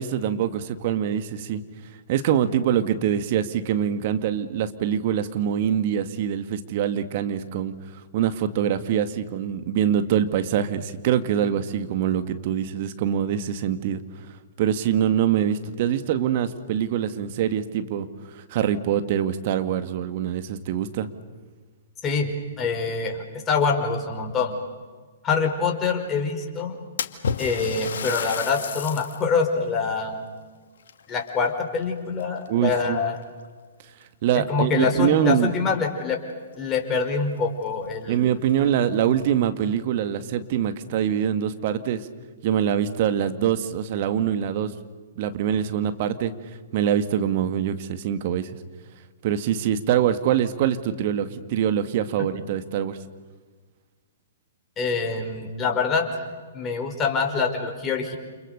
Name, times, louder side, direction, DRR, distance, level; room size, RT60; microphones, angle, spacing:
voice 1, 0.0-1.6 2.1-7.7 8.1-14.0 14.6-18.1 18.5-21.1 32.5-33.0 34.2-35.5 38.1-42.0 42.4-44.7 45.2-46.3 46.7-48.4 49.2-52.9, right 9 dB, 45° right, 9 dB, 2.1 m, -24 dB
voice 2, 22.0-24.5 25.2-26.8 27.4-30.2 31.1-33.2 34.3-36.2 36.6-38.2 54.8-56.1 56.5-58.2, left 5 dB, 20° left, 2 dB, 5.2 m, -25 dB
Splash splatter, 27.0-29.3 29.8-29.9 30.8-31.8 32.2-32.6 33.4-33.5 34.0-34.1 36.3-36.4 36.7-36.8 37.4-37.5 37.9-38.0 38.7-39.3, left 6 dB, 65° left, 2.0 m, -32 dB
29.5 x 29.0 x 6.7 m, 1.4 s
figure-of-eight pair, 115°, 0 cm